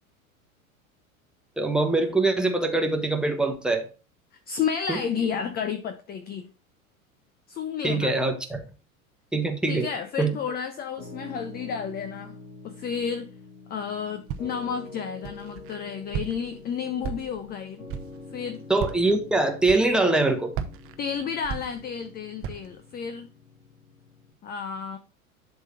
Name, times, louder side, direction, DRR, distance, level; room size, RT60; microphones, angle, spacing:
voice 1, 1.6-3.8 4.9-5.0 7.8-8.6 9.3-9.9 10.2-10.4 18.7-20.5, right 2 dB, ahead, 1.3 m, -23 dB
voice 2, 4.5-6.5 7.5-8.2 9.7-12.4 12.6-13.3 13.7-17.8 18.3-18.6 21.0-23.3 24.4-25.0, left 7 dB, 20° left, 0.7 m, -31 dB
Piano, 11.0-24.3, left 3 dB, 85° left, 2.5 m, -46 dB
Walk footsteps, 14.3-14.7 15.2-15.8 16.1-16.6 17.0-17.5 17.9-18.2 18.7-19.1 19.6-20.2 20.5-22.1 22.4-22.8, right 8 dB, 30° right, 1.0 m, -35 dB
11.0 x 3.7 x 4.1 m
figure-of-eight pair, 85°, 42 cm